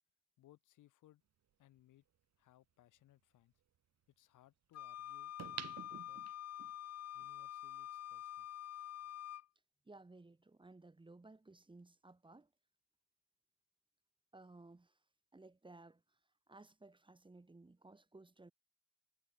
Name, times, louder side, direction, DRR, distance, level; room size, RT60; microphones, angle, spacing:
voice 1, 0.4-1.2 1.6-2.0 2.4-3.5 4.2-6.3 7.1-8.5, left 14 dB, 85° left, 6.5 m, -67 dB
sound 1, 1.8-1.9 5.4-6.7 7.2-7.3, right 10 dB, 60° right, 1.8 m, -48 dB
Wind instrument woodwind instrument, 4.7-9.5, left 11 dB, 55° left, 0.9 m, -47 dB
voice 2, 9.9-12.5 14.3-15.0 15.3-16.2 16.5-18.5, right 2 dB, 15° right, 2.2 m, -58 dB
cardioid pair, 90°, 30 cm